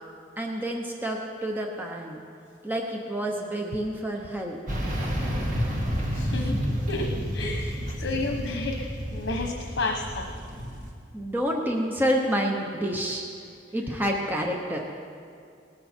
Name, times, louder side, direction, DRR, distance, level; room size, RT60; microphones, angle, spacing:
voice 1, 0.4-2.2 2.6-4.6 6.5-6.6 11.1-13.2 13.7-14.8, equal, 10° right, 0 dB, 0.9 m, -28 dB
sound 1, 4.7-10.9, equal, 40° right, 1.9 m, -30 dB
voice 2, 4.9-5.3 6.1-6.5 6.9-10.3, left 2 dB, 80° left, 2 dB, 1.1 m, -32 dB
19.0 x 13.0 x 4.4 m, 2.3 s
head